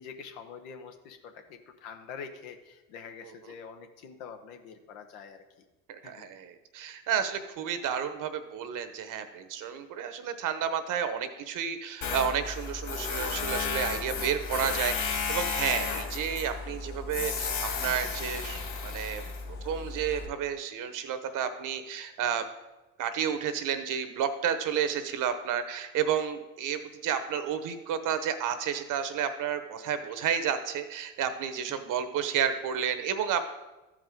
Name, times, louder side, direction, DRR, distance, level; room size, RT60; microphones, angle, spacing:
voice 1, 0.0-5.4 6.0-6.3 31.7-31.8, left 6 dB, 80° left, 5 dB, 1.1 m, -45 dB
voice 2, 5.9-19.2 19.6-22.4 23.0-33.5, right 8 dB, 55° right, 10 dB, 1.0 m, -31 dB
Tools, 12.0-20.3, left 5 dB, 50° left, 2.4 m, -33 dB
13.5 x 5.0 x 3.8 m, 1.1 s
hypercardioid pair, 75°, 39 cm